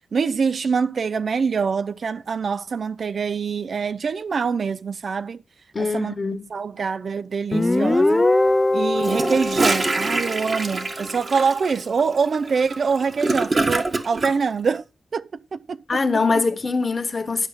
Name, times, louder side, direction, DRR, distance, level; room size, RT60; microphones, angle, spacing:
voice 1, 0.1-5.4 5.8-6.2 6.5-8.2 8.7-14.8 15.1-16.0, right 5 dB, 70° right, 0.5 m, -25 dB
voice 2, 5.7-6.4 15.9-17.5, left 4 dB, 45° left, 1.4 m, -23 dB
Guitar, 7.5-11.0, left 2 dB, 25° left, 0.6 m, -21 dB
Gurgling / Toilet flush, 9.0-14.3, right 3 dB, 50° right, 1.5 m, -25 dB
11.0 x 5.6 x 5.2 m
cardioid pair, 65°, 0 cm